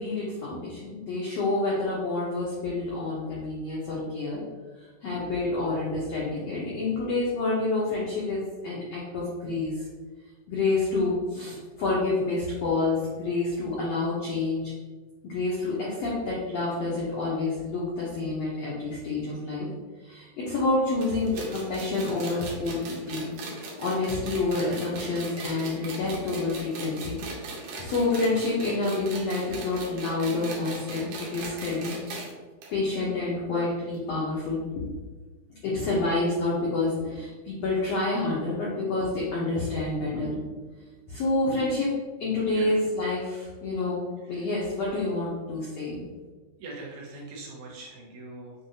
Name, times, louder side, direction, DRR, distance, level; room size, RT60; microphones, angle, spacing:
voice 1, 0.0-4.4 5.0-9.7 10.5-14.7 15.2-19.7 20.0-22.8 23.1-23.3 23.8-27.2 27.8-32.0 32.7-34.9 35.5-40.8 41.1-41.9 42.2-44.0 44.3-46.0, left 3 dB, 80° left, -6 dB, 1.4 m, -28 dB
sound 1, 21.0-32.3 32.6-32.7 33.0-33.1 33.9-34.0, right 3 dB, 70° right, 2.2 m, -39 dB
voice 2, 46.6-48.6, right 2 dB, 85° right, -3 dB, 2.9 m, -42 dB
7.1 x 2.8 x 2.7 m, 1.3 s
omnidirectional pair, 4.1 m